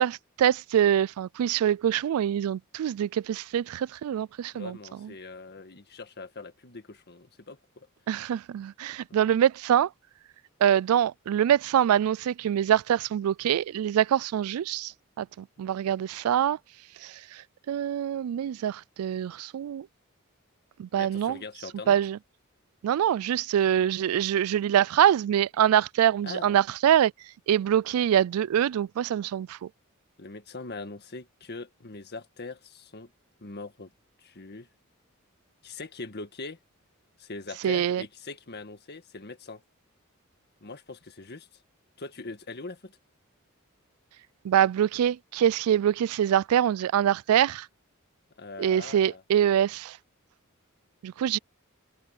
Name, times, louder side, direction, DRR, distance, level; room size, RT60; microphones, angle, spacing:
voice 1, 0.0-5.1 8.1-9.9 10.6-14.9 15.2-16.6 17.0-17.4 17.7-19.9 20.8-21.4 21.9-22.2 22.8-27.1 27.5-29.7 37.6-38.0 44.4-47.7 48.6-50.0 51.0-51.4, right 10 dB, 85° right, 0.3 m, -24 dB
voice 2, 4.5-7.9 9.1-9.2 15.8-15.9 20.9-22.0 26.2-26.6 30.2-33.1 33.4-33.9 34.2-34.7 35.6-36.6 37.2-39.6 40.6-41.6 42.0-43.0 48.4-49.2, left 3 dB, 50° left, 1.7 m, -42 dB
head